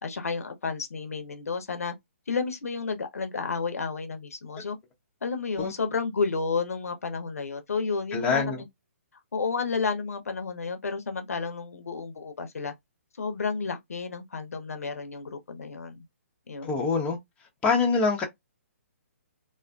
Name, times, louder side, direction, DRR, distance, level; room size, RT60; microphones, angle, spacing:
voice 1, 0.0-1.9 2.3-4.8 5.2-8.5 9.3-12.7 13.2-16.0 16.5-16.7, left 4 dB, 80° left, 0.7 m, -31 dB
voice 2, 8.1-8.6 16.6-17.2 17.6-18.2, left 4 dB, 15° left, 0.7 m, -24 dB
2.5 x 2.4 x 2.2 m
hypercardioid pair, 140°, 8 cm